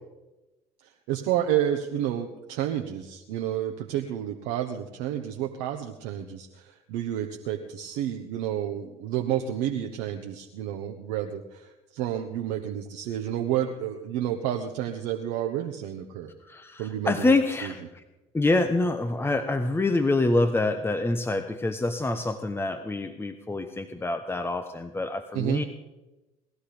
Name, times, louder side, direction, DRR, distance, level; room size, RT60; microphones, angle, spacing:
voice 1, 0.8-16.3 16.8-17.3 17.6-17.7 25.3-25.6, right 11 dB, 75° right, 4 dB, 1.2 m, -30 dB
voice 2, 16.4-18.0 18.3-25.6, left 2 dB, 15° left, 8 dB, 1.2 m, -26 dB
19.0 x 13.0 x 5.1 m, 1.0 s
hypercardioid pair, 65°, 15 cm